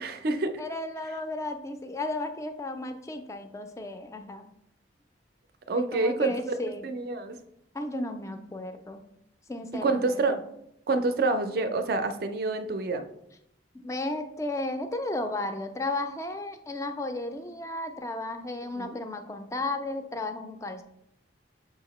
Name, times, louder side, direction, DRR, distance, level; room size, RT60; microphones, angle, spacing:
voice 1, 0.0-0.6 5.7-6.3 6.8-7.4 9.8-10.4 10.9-13.1 18.8-19.0, right 3 dB, 55° right, 8 dB, 0.4 m, -27 dB
voice 2, 0.6-4.5 5.7-6.9 7.7-9.0 9.5-10.4 13.7-20.8, left 2 dB, 15° left, 7 dB, 0.3 m, -34 dB
6.4 x 2.8 x 3.0 m, 0.77 s
head